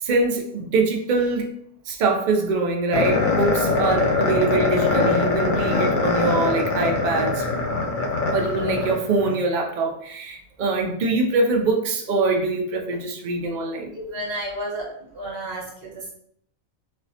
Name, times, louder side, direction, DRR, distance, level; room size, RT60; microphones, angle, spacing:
voice 1, 0.0-1.6 1.9-7.4 8.3-13.9, right 3 dB, 90° right, 1 dB, 0.4 m, -23 dB
sound 1, 2.9-9.3, left 3 dB, 65° left, 0.5 m, -22 dB
voice 2, 13.9-14.9 15.1-16.1, right 1 dB, 50° right, -3 dB, 1.2 m, -31 dB
4.2 x 2.0 x 2.7 m, 0.67 s
omnidirectional pair, 1.5 m